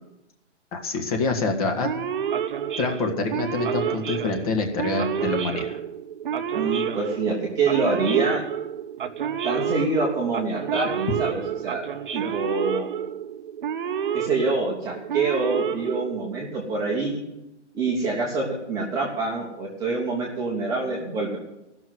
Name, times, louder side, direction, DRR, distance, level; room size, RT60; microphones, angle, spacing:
voice 1, 0.7-1.9 2.8-5.8, left 3 dB, 30° left, 4 dB, 1.7 m, -26 dB
Male speech man speaking / Siren, 1.8-16.6, right 8 dB, 45° right, 0.7 m, -29 dB
voice 2, 6.5-8.4 9.4-11.8 12.1-12.9 14.1-17.2 17.7-21.4, right 3 dB, 10° right, -4 dB, 1.0 m, -26 dB
14.5 x 6.3 x 9.2 m, 0.91 s
hypercardioid pair, 165°, 36 cm